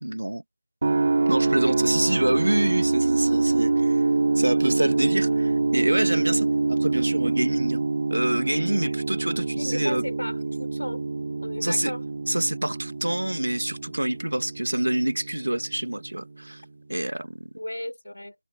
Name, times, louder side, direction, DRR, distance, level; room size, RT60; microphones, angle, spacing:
voice 1, 0.0-0.4 1.3-4.0 4.4-7.8 8.1-10.1 11.6-11.9 12.3-16.6 16.9-17.5, right 1 dB, 85° right, 2.1 m, -26 dB
sound 1, 0.8-16.7, right 3 dB, 45° right, 2.8 m, -25 dB
voice 2, 9.5-11.0 11.4-12.0 17.6-18.4, left 1 dB, 85° left, 5.1 m, -34 dB
figure-of-eight pair, 165°, 0 cm